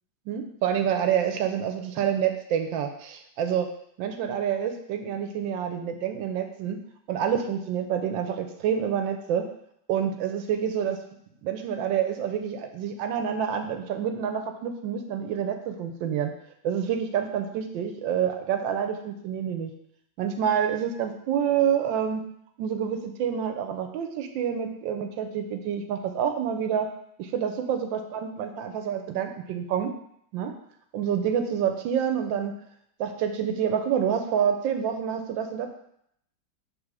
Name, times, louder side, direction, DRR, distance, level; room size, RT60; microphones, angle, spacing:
voice 1, 0.3-3.7 4.0-6.8 7.1-9.5 9.9-11.0 11.4-16.3 16.6-19.7 20.2-22.2 22.6-26.9 27.2-29.9 30.3-30.5 30.9-32.5 33.0-35.7, right 8 dB, 75° right, 7 dB, 1.2 m, -27 dB
6.7 x 3.5 x 4.8 m, 0.72 s
omnidirectional pair, 2.2 m